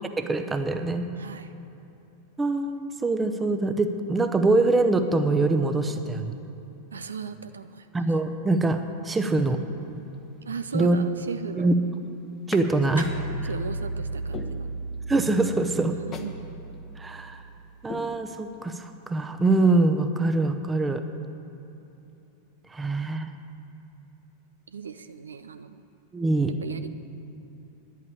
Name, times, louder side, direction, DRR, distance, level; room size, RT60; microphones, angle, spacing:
voice 1, 0.2-1.1 2.4-6.4 7.9-9.6 10.7-11.0 11.6-11.7 12.5-13.1 15.1-15.9 17.0-17.4 17.8-21.0 22.7-23.3 26.1-26.5, right 2 dB, 15° right, 7 dB, 0.8 m, -24 dB
voice 2, 1.2-1.5 6.9-7.9 10.4-11.8 13.4-14.7 16.1-16.4 24.7-25.8 26.6-26.9, right 6 dB, 70° right, 10 dB, 0.4 m, -37 dB
sound 1, 9.8-10.1 10.7-11.6 12.5-12.7 13.1-13.2 13.7-13.8 14.3-15.2 15.5-15.6 16.1-16.4 16.7-16.8 17.3-17.5 17.9-18.8 19.1-19.2, left 5 dB, 30° left, 1.0 m, -40 dB
sound 2, 13.0-17.7, right 2 dB, 90° right, 1.0 m, -35 dB
10.5 x 8.4 x 8.7 m, 3.0 s
figure-of-eight pair, 90°, 0 cm